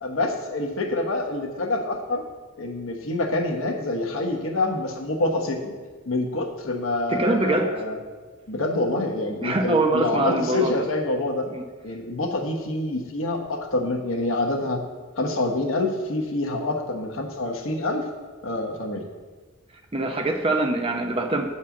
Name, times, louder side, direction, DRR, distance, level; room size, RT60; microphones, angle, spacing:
voice 1, 0.0-2.2 2.6-5.7 6.1-8.0 8.5-11.4 11.8-14.8 15.2-18.1 18.4-19.0, left 2 dB, 70° left, 1 dB, 1.1 m, -26 dB
voice 2, 7.1-7.7 9.4-10.7 11.5-11.6 19.9-21.5, right 2 dB, 25° right, 4 dB, 0.7 m, -23 dB
8.7 x 4.4 x 7.1 m, 1.4 s
head